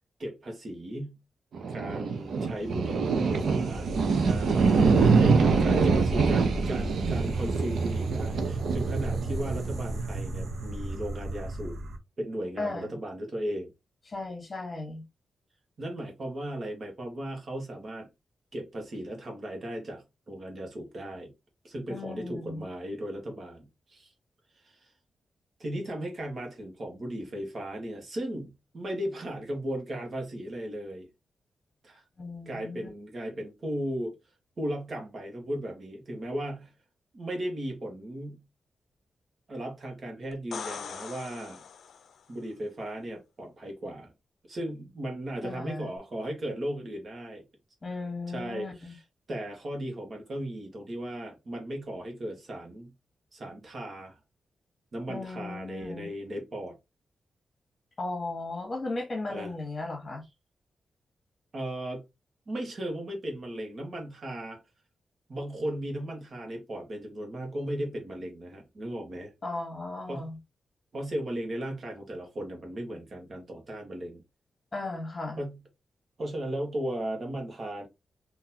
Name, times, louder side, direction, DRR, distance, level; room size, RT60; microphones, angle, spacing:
voice 1, 0.2-1.2 1.7-3.9 4.2-11.8 12.2-13.7 15.8-18.1 18.5-21.3 21.6-24.1 24.5-24.9 25.6-31.1 31.8-32.0 32.4-34.2 34.6-36.7 37.1-38.4 39.5-41.6 42.3-44.1 44.5-47.4 48.3-49.0 49.3-52.9 53.3-54.2 54.9-56.8 59.3-59.5 61.5-62.0 62.5-64.6 65.3-69.3 70.1-70.3 70.9-74.2 75.4-75.6 76.2-77.9, right 1 dB, 45° right, 1.3 m, -36 dB
sound 1, 1.5-12.0, right 4 dB, 80° right, 0.7 m, -25 dB
voice 2, 5.3-6.1 12.6-12.9 14.1-15.0 21.9-22.6 32.2-32.9 45.4-45.9 47.8-49.0 55.1-56.1 58.0-60.2 69.4-70.4 74.7-75.4, left 2 dB, 25° left, 1.5 m, -36 dB
sound 2, 40.3-42.2 46.0-46.1, left 7 dB, 90° left, 0.4 m, -41 dB
3.9 x 2.7 x 2.8 m
wide cardioid pair, 155°, 0 cm